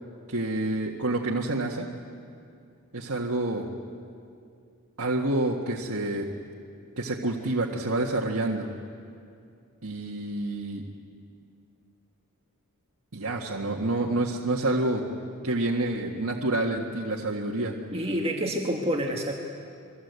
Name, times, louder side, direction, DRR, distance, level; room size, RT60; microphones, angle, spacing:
voice 1, 0.3-1.9 2.9-3.7 5.0-6.3 7.0-8.7 9.8-10.8 13.1-15.0 15.4-17.7, right 2 dB, 70° right, -2 dB, 1.8 m, -28 dB
voice 2, 17.9-19.3, equal, 25° right, 0 dB, 1.9 m, -28 dB
29.0 x 22.5 x 8.2 m, 2.4 s
head